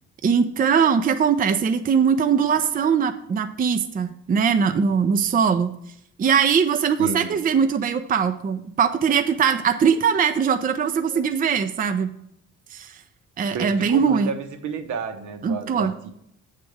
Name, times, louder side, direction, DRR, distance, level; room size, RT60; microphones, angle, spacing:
voice 1, 0.2-5.7 6.2-12.1 12.7-13.0 13.4-14.3 15.4-15.9, right 6 dB, 30° right, 8 dB, 0.5 m, -21 dB
voice 2, 7.0-7.4 13.5-16.1, right 5 dB, 75° right, 7 dB, 0.9 m, -31 dB
7.5 x 3.5 x 6.4 m, 0.73 s
cardioid pair, 90°, 30 cm